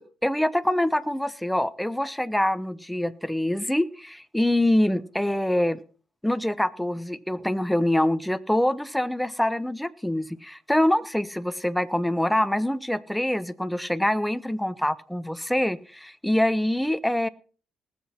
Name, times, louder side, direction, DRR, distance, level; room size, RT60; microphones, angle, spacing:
voice 1, 0.2-5.8 6.2-17.3, left 1 dB, 5° left, 14 dB, 0.8 m, -25 dB
19.5 x 7.8 x 4.2 m, 0.40 s
cardioid pair, 90°, 0 cm